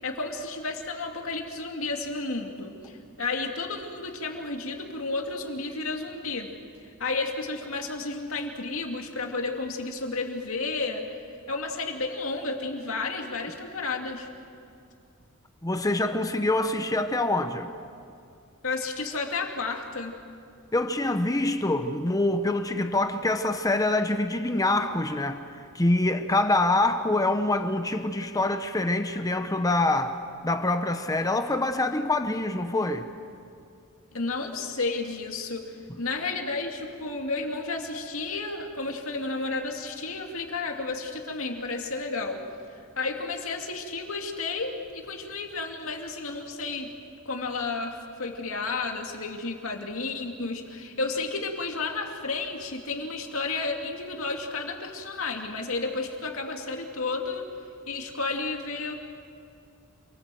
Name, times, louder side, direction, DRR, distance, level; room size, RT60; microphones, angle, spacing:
voice 1, 0.0-6.5 7.0-11.1 11.5-14.3 18.6-20.1 34.1-42.4 43.0-46.9 47.3-57.5 57.9-58.9, left 3 dB, 70° left, 2 dB, 2.5 m, -32 dB
voice 2, 15.6-17.7 20.7-25.4 25.7-30.2 30.4-33.1 35.9-36.0, left 2 dB, 15° left, 8 dB, 0.9 m, -25 dB
27.5 x 19.5 x 7.8 m, 2.4 s
head